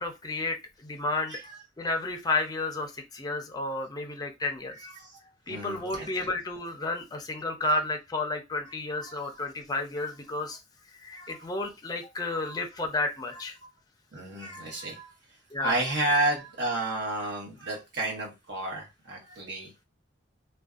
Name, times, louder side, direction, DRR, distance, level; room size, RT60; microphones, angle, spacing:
voice 1, 0.0-1.4 1.8-4.8 5.5-10.6 10.9-13.6 15.5-16.1, left 2 dB, 20° left, 4 dB, 0.4 m, -32 dB
voice 2, 4.7-6.3 7.6-7.8 8.6-9.3 10.0-10.1 11.1-11.4 12.2-12.6 13.3-13.4 14.1-15.1 15.6-19.7, right 2 dB, 70° right, -1 dB, 1.0 m, -32 dB
2.5 x 2.2 x 2.3 m, 0.24 s
head